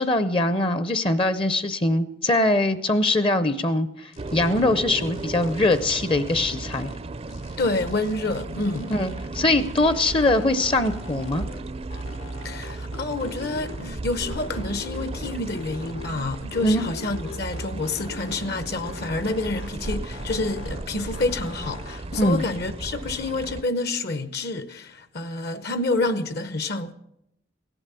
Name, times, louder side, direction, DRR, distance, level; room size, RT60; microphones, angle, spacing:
voice 1, 0.0-6.9 8.9-11.5 16.6-16.8 22.1-22.4, left 2 dB, 25° left, 0.6 m, -22 dB
sound 1, 4.1-4.7 5.0-7.0 7.3-9.3 9.6-11.6 11.9-13.9 14.2-16.2 16.5-18.5 18.8-20.8 21.1-22.3, left 4 dB, 85° left, 1.8 m, -42 dB
sound 2, 4.2-23.6, right 2 dB, 30° right, 0.5 m, -35 dB
voice 2, 7.6-8.9 12.4-26.9, left 2 dB, 55° left, 0.8 m, -28 dB
17.0 x 11.0 x 6.9 m
head